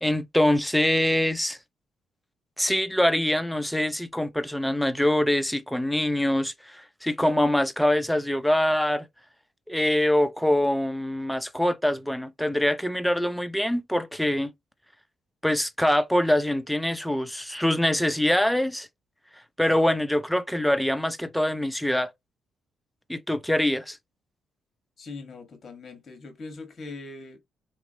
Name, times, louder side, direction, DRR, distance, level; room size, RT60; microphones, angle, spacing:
voice 1, 0.0-1.6 2.6-9.1 9.7-14.5 15.4-18.9 19.6-22.1 23.1-24.0, left 1 dB, 5° left, 0.5 m, -24 dB
voice 2, 25.0-27.4, left 3 dB, 45° left, 1.4 m, -41 dB
3.4 x 3.0 x 2.7 m
cardioid pair, 90°, 0 cm